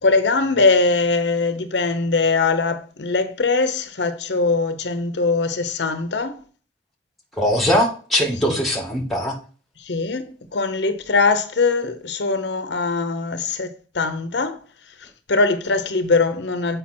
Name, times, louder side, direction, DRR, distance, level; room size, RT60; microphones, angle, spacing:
voice 1, 0.0-6.4 8.4-8.6 9.8-14.6 15.0-16.8, left 3 dB, 75° left, 0.8 m, -21 dB
voice 2, 7.4-9.4, equal, ahead, 2.0 m, -21 dB
7.4 x 5.2 x 4.3 m
head